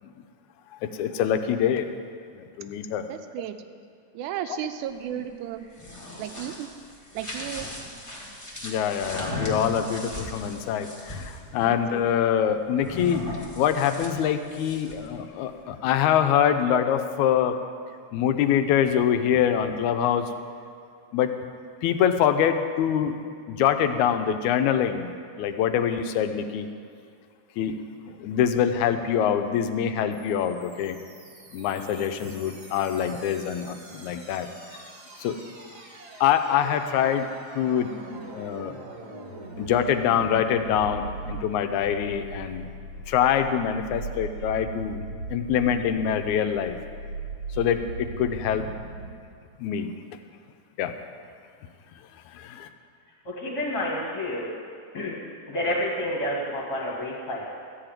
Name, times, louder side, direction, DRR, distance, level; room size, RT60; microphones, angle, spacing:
voice 1, 1.0-1.9 2.4-3.0 4.5-4.7 5.1-5.3 8.6-13.2 13.6-17.6 18.1-20.3 21.1-21.3 21.8-23.1 23.5-25.1 25.4-26.7 27.6-27.8 28.2-31.0 31.5-34.5 35.2-35.4 36.2-37.3 37.6-38.7 39.6-42.7 43.1-45.0 45.3-46.8 47.6-48.6 49.6-49.9 50.8-50.9 52.3-52.7, left 9 dB, 80° left, 8 dB, 2.0 m, -24 dB
voice 2, 3.1-3.6 4.1-5.7 6.2-6.7 7.1-7.7 11.6-11.8, right 11 dB, 85° right, 9 dB, 2.1 m, -34 dB
sound 1, 5.6-11.4 12.8-15.1, left 1 dB, 15° left, 1.3 m, -37 dB
sound 2, 30.1-49.1, right 3 dB, 45° right, 1.3 m, -40 dB
voice 3, 53.3-54.5 54.9-55.2 55.5-57.5, left 1 dB, 40° left, -4 dB, 1.8 m, -29 dB
13.5 x 4.9 x 8.9 m, 2.3 s
omnidirectional pair, 3.4 m